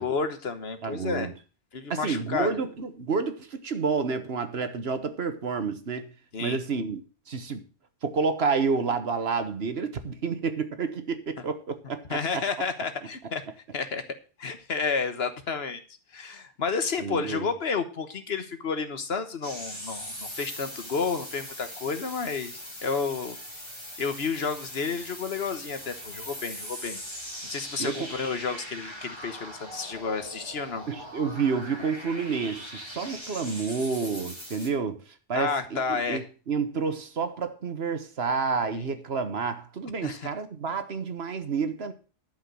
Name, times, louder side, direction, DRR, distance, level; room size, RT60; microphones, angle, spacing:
voice 1, 0.0-1.3 1.7-2.6 6.3-6.6 11.4-11.5 12.1-13.4 13.7-14.0 14.4-15.8 16.1-23.4 24.0-27.0 27.4-30.8 35.3-36.2 38.7-38.8 40.0-40.3, left 5 dB, 70° left, 1.5 m, -31 dB
voice 2, 0.8-1.3 1.9-6.1 6.4-7.0 7.3-7.6 8.0-12.2 17.0-17.4 27.8-28.1 30.9-35.0 35.3-41.9, right 5 dB, 70° right, 1.5 m, -29 dB
sound 1, 19.4-34.7, equal, 25° left, 2.3 m, -41 dB
12.0 x 5.3 x 7.5 m
omnidirectional pair, 1.1 m